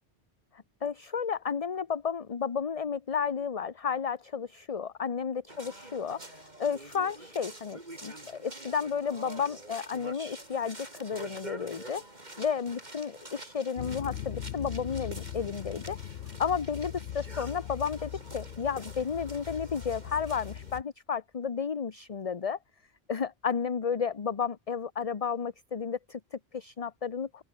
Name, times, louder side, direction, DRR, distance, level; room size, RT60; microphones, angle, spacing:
voice 1, 0.8-12.0 12.4-16.0 16.4-22.6 23.1-27.4, left 6 dB, 35° left, 0.9 m, -32 dB
sound 1, 5.5-20.8, right 1 dB, 45° right, 4.3 m, -47 dB
sound 2, 13.8-20.8, left 11 dB, 85° left, 0.9 m, -40 dB
open air
omnidirectional pair, 1.1 m